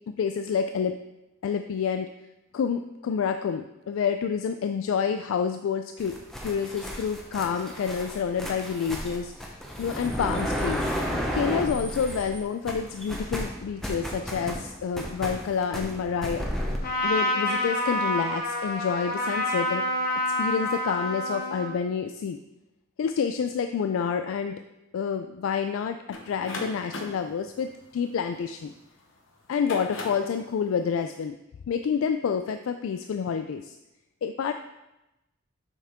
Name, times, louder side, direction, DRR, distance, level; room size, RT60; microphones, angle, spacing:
voice 1, 0.1-1.0 1.4-2.1 2.5-9.3 9.8-10.9 11.3-16.5 17.0-19.8 20.4-22.4 23.0-24.6 24.9-28.7 29.5-31.4 31.7-33.8 34.2-34.5, left 6 dB, 85° left, 8 dB, 0.3 m, -28 dB
sound 1, 6.0-12.4 12.7-16.8, equal, ahead, 0.8 m, -33 dB
Trumpet, 16.8-21.7, left 1 dB, 45° left, 1.2 m, -28 dB
sound 2, 26.1-28.8 29.4-30.3, left 2 dB, 70° left, 1.1 m, -38 dB
7.0 x 5.7 x 3.6 m, 0.95 s
head